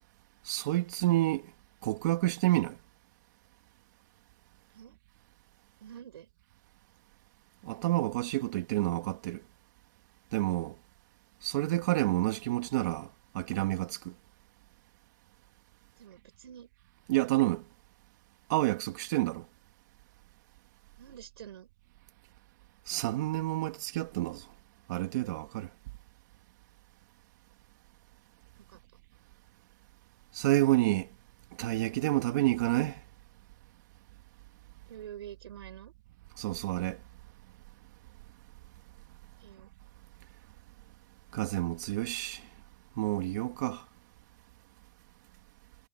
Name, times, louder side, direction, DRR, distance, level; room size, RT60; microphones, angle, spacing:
voice 1, 0.5-1.4 1.8-2.8 7.6-9.4 10.3-10.8 11.4-13.1 13.3-14.1 17.1-17.6 18.5-19.5 22.9-24.5 24.9-25.7 30.3-31.1 31.6-33.0 36.4-37.0 41.3-42.4 43.0-43.8, right 17 dB, 45° right, 1.9 m, -29 dB
voice 2, 5.8-6.3 16.0-16.7 21.0-21.7 28.7-28.8 34.9-35.9 39.4-39.7, right 10 dB, 75° right, 6.2 m, -47 dB
supercardioid pair, 165°, 13 cm